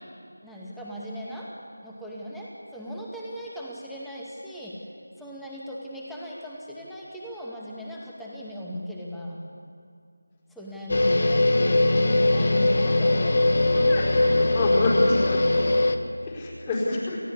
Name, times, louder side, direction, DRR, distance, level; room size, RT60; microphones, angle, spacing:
voice 1, 0.4-1.5 1.8-4.8 5.2-9.4 10.5-14.6, equal, ahead, -6 dB, 2.2 m, -37 dB
sound 1, 10.9-16.0, left 2 dB, 50° left, 1.5 m, -21 dB
voice 2, 13.7-15.4 16.2-17.2, left 2 dB, 20° left, -5 dB, 4.8 m, -27 dB
29.0 x 14.0 x 8.4 m, 2.3 s
figure-of-eight pair, 170°, 0 cm